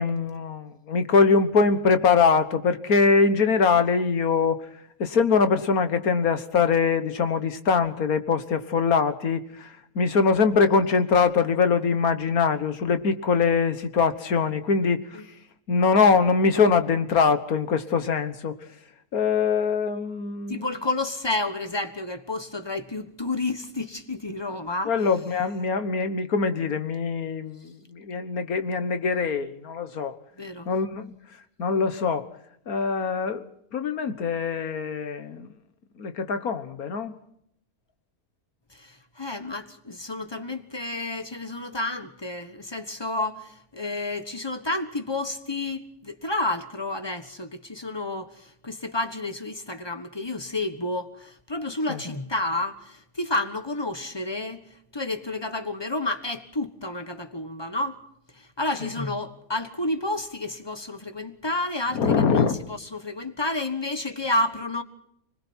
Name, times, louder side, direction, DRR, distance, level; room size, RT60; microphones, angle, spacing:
voice 1, 0.0-4.6 5.0-9.7 10.0-15.0 15.7-18.6 19.1-20.7 24.9-30.2 30.7-31.1 31.6-32.3 32.7-33.5 33.7-35.5 36.0-37.2 51.9-52.0 61.9-62.6, left 5 dB, 80° left, 1.8 m, -23 dB
voice 2, 20.5-24.9 30.4-30.7 38.7-54.6 54.9-58.0 58.4-64.8, left 2 dB, 20° left, 1.3 m, -30 dB
30.0 x 20.5 x 4.5 m
omnidirectional pair, 1.5 m